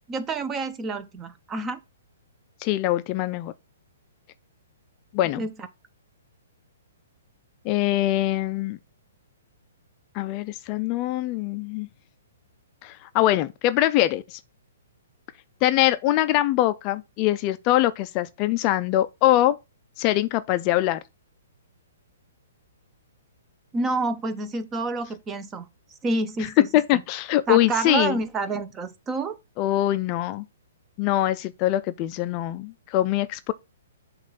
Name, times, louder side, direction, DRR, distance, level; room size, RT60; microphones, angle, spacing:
voice 1, 0.1-1.8 5.4-5.5 23.7-25.7 26.0-26.7 26.9-27.0 27.5-29.4, right 3 dB, 20° right, 0.7 m, -28 dB
voice 2, 2.6-3.5 5.1-5.4 7.6-8.8 10.1-11.9 12.8-14.4 15.6-19.6 20.0-21.0 26.4-28.2 29.6-30.4 31.0-33.5, left 14 dB, 35° left, 0.4 m, -23 dB
7.3 x 2.4 x 5.4 m
figure-of-eight pair, 125°, 0 cm